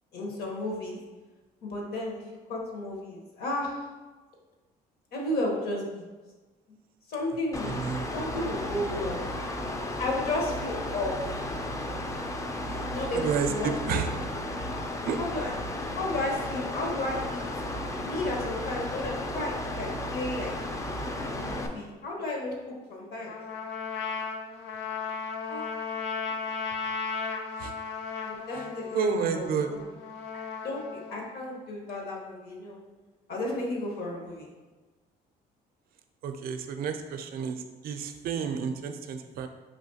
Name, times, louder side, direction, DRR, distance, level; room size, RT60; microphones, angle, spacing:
voice 1, 0.1-1.0 1.6-2.2 2.5-3.8 5.1-6.0 7.1-7.7 8.1-9.3 10.0-11.2 12.9-14.0 15.2-15.5 15.9-17.4 18.1-20.5 21.3-23.4 25.5-25.6 26.2-26.5 28.2-29.8 30.6-32.8 33.3-34.5, left 2 dB, 65° left, -1 dB, 1.1 m, -33 dB
Mechanical fan, 7.5-21.7, left 1 dB, 20° left, 0.4 m, -34 dB
voice 2, 7.6-8.3 13.1-14.1 15.1-15.2 27.6-27.7 28.6-28.7 28.9-29.7 36.2-39.5, right 6 dB, 60° right, 7 dB, 0.5 m, -30 dB
Trumpet, 23.3-31.3, left 5 dB, 85° left, 0.5 m, -35 dB
5.0 x 3.0 x 2.8 m, 1.2 s
cardioid pair, 110°, 17 cm